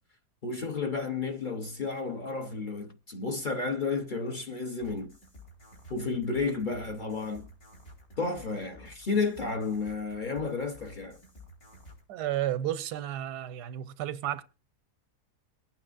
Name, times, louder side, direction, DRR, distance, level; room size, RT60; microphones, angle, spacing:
voice 1, 0.4-5.1 5.9-7.5 8.2-11.2, left 4 dB, 40° left, 0.8 m, -32 dB
sound 1, 4.8-12.0, left 1 dB, 65° left, 4.1 m, -53 dB
voice 2, 12.1-14.4, right 12 dB, 90° right, 1.3 m, -32 dB
22.5 x 8.9 x 2.4 m
omnidirectional pair, 1.7 m